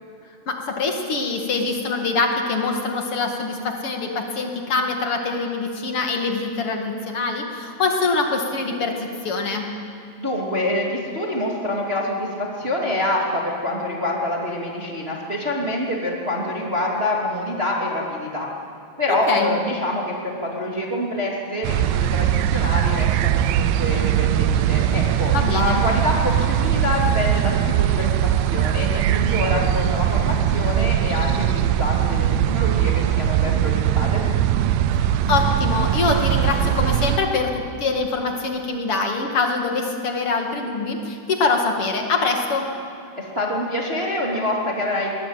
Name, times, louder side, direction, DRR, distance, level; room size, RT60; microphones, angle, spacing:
voice 1, 0.5-9.7 19.3-19.6 25.3-25.8 35.0-42.7, left 3 dB, 45° left, 2 dB, 2.0 m, -24 dB
voice 2, 10.2-18.5 19.0-34.2 43.2-45.1, left 1 dB, 20° right, -2 dB, 2.1 m, -26 dB
sound 1, 21.6-37.2, right 11 dB, 85° right, 2.1 m, -20 dB
22.0 x 19.0 x 9.0 m, 2.5 s
omnidirectional pair, 5.0 m